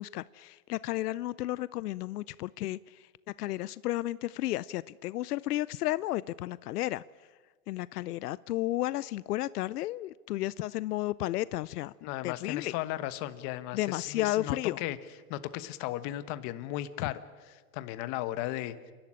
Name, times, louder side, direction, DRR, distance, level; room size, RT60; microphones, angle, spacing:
voice 1, 0.0-3.0 3.4-7.0 7.7-11.9 12.2-12.7 13.7-14.8 17.0-17.1, left 15 dB, 85° left, 20 dB, 0.6 m, -33 dB
voice 2, 12.0-15.0 15.3-17.2 17.5-18.7, left 14 dB, 40° left, 13 dB, 1.2 m, -36 dB
28.5 x 12.0 x 10.0 m, 1.4 s
supercardioid pair, 145°, 45 cm